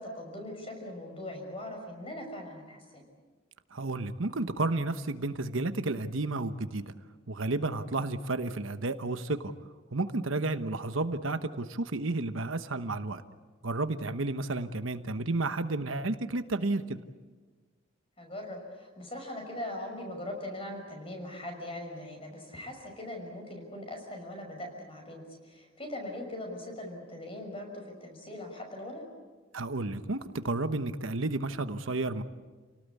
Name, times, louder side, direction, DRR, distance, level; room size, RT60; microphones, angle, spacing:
voice 1, 0.0-3.0 18.2-29.0, left 1 dB, 25° left, 3 dB, 5.8 m, -41 dB
voice 2, 3.7-6.9 7.3-9.5 9.9-13.2 13.6-17.0 29.5-32.2, right 2 dB, 75° right, 9 dB, 1.1 m, -32 dB
29.5 x 18.5 x 8.4 m, 1.4 s
head